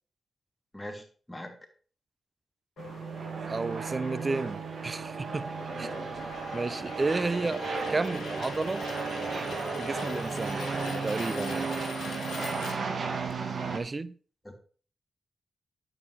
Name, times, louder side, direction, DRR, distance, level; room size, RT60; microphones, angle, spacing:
voice 1, 0.7-1.6 14.4-14.5, left 1 dB, 15° left, 2.8 m, -41 dB
sound 1, 2.8-13.3, left 5 dB, 85° left, 1.5 m, -43 dB
sound 2, 2.8-13.8, right 4 dB, 65° right, 1.2 m, -34 dB
voice 2, 3.5-5.5 5.8-5.9 6.5-8.8 9.8-10.6 11.0-11.8 13.7-14.2, right 3 dB, 40° right, 0.6 m, -32 dB
9.3 x 7.3 x 3.2 m
cardioid pair, 50°, 0 cm